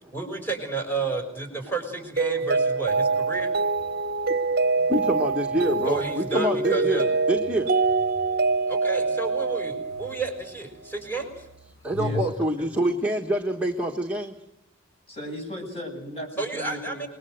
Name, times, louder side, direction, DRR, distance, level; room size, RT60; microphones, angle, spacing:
voice 1, 0.1-3.5 5.9-7.0 8.7-11.5 16.4-17.1, right 4 dB, 10° left, 3 dB, 5.9 m, -31 dB
Mallet percussion, 2.2-10.3, right 3 dB, 45° right, 1.0 m, -25 dB
sound 1, 3.8-12.3, left 2 dB, 75° left, 5.4 m, -42 dB
voice 2, 4.0-4.5 4.9-7.7 11.8-14.3, right 1 dB, 5° right, -1 dB, 1.5 m, -26 dB
voice 3, 12.0-12.8 15.1-17.1, left 1 dB, 30° left, 3 dB, 7.6 m, -37 dB
28.5 x 22.0 x 8.0 m, 0.82 s
head